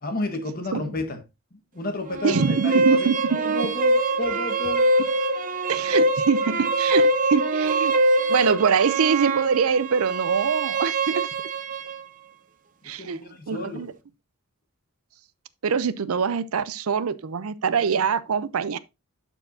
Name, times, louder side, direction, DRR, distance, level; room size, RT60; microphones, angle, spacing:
voice 1, 0.0-1.2 1.5-3.1 3.4-4.9 12.8-13.9, left 1 dB, 40° left, 1.4 m, -31 dB
sound 1, 2.1-12.0, right 2 dB, 35° right, 0.7 m, -23 dB
voice 2, 2.2-3.4 5.7-7.9 8.3-11.3 12.8-13.9 15.6-18.8, right 6 dB, 75° right, 0.5 m, -24 dB
12.5 x 4.5 x 2.6 m
head